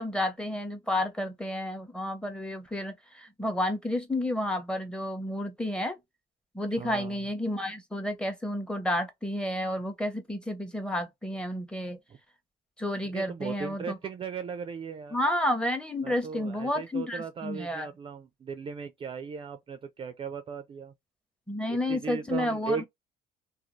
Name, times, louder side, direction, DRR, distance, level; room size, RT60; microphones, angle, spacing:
voice 1, 0.0-6.0 6.5-12.0 12.8-14.0 15.1-17.9 21.5-22.8, left 1 dB, 5° left, 0.7 m, -31 dB
voice 2, 6.8-7.2 13.1-15.2 16.0-20.9 21.7-22.8, right 5 dB, 30° right, 0.4 m, -37 dB
2.5 x 2.3 x 3.0 m
cardioid pair, 110°, 17 cm